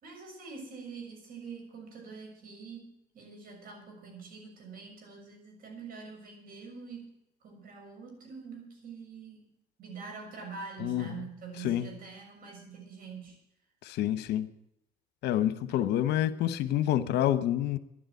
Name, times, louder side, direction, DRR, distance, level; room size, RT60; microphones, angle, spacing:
voice 1, 0.0-7.1 7.4-9.4 9.8-13.3 15.7-15.9, right 5 dB, 60° right, 6.5 m, -45 dB
voice 2, 10.8-11.3 11.6-11.9 13.8-14.5 15.2-17.8, left 12 dB, 80° left, 1.0 m, -28 dB
11.5 x 11.0 x 9.1 m
cardioid pair, 110°, 17 cm